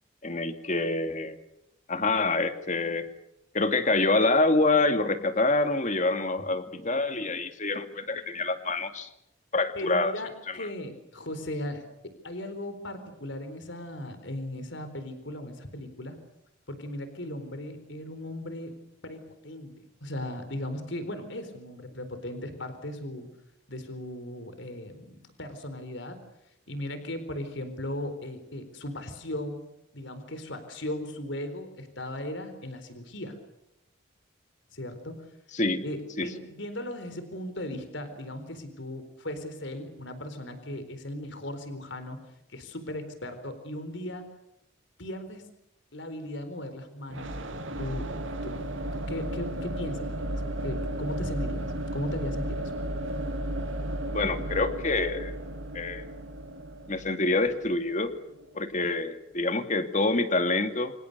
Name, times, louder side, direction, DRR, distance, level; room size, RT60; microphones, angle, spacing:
voice 1, 0.2-1.4 1.9-3.1 3.5-9.1 9.5-10.1 10.5-10.6 35.5-35.8 36.2-36.3 54.1-55.3 55.7-56.0 56.9-58.1 58.5-60.9, left 2 dB, 40° left, 8 dB, 2.4 m, -26 dB
voice 2, 9.7-16.2 16.7-18.7 19.0-19.7 20.0-23.3 23.7-26.2 26.7-29.6 29.9-33.4 34.7-35.3 35.8-42.2 42.5-44.3 45.0-45.5 45.9-47.3 47.8-48.1 48.4-48.6 48.9-52.7, left 1 dB, 65° left, 10 dB, 4.3 m, -37 dB
sound 1, 47.1-58.9, right 1 dB, 70° right, 2.4 m, -34 dB
28.5 x 26.5 x 6.8 m, 0.83 s
head